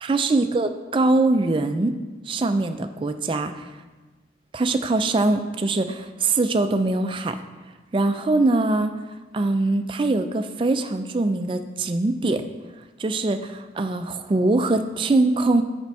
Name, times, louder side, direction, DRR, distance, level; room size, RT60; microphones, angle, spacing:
voice 1, 0.0-2.0 2.3-3.6 4.5-7.4 7.9-8.9 9.3-12.4 13.0-15.6, right 2 dB, 30° right, 8 dB, 0.3 m, -22 dB
6.7 x 5.2 x 4.7 m, 1.2 s
head